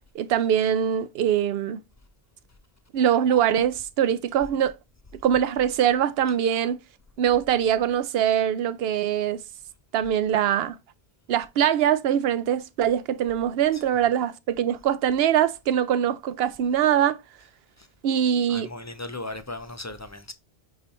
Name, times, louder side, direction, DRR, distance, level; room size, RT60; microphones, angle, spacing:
voice 1, 0.1-1.8 2.9-4.8 5.2-6.8 7.2-9.4 9.9-10.8 11.3-17.2 18.0-18.7, right 9 dB, 70° right, 0.8 m, -23 dB
voice 2, 18.5-20.3, left 2 dB, 30° left, 0.3 m, -36 dB
8.5 x 3.0 x 4.1 m
omnidirectional pair, 1.1 m